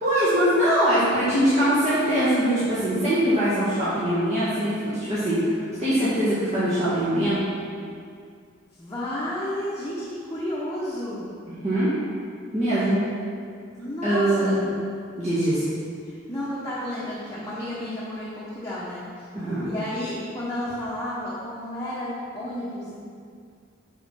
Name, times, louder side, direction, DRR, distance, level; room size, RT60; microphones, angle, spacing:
voice 1, 0.0-7.4 11.6-11.9 12.5-13.0 14.0-14.5 15.2-15.7 19.3-19.7, right 1 dB, 30° right, -13 dB, 1.9 m, -22 dB
voice 2, 8.8-11.3 13.8-14.5 16.0-19.3 19.6-23.0, left 1 dB, 15° left, -9 dB, 1.1 m, -32 dB
6.3 x 5.9 x 5.7 m, 2.2 s
head